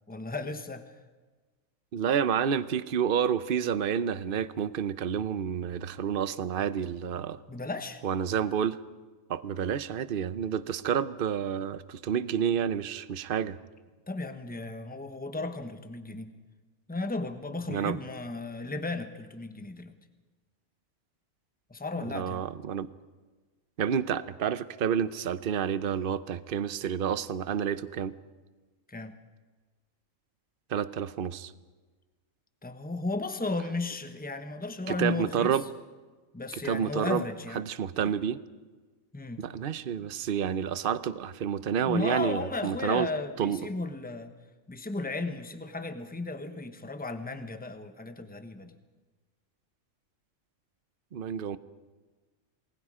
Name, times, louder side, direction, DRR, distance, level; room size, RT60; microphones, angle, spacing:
voice 1, 0.1-0.9 7.5-8.0 14.1-16.3 16.9-20.0 21.7-22.5 28.9-29.2 32.6-35.6 36.3-37.6 39.1-39.4 41.8-44.3 44.7-48.8, left 3 dB, 5° left, 8 dB, 1.1 m, -35 dB
voice 2, 1.9-7.4 8.0-8.8 9.3-13.6 17.7-18.0 22.1-22.9 23.8-28.1 30.7-31.5 34.9-35.6 36.6-37.2 37.5-38.4 39.4-43.1 43.4-43.6 51.1-51.6, right 8 dB, 45° right, 14 dB, 0.9 m, -29 dB
28.5 x 20.5 x 5.0 m, 1.3 s
omnidirectional pair, 1.5 m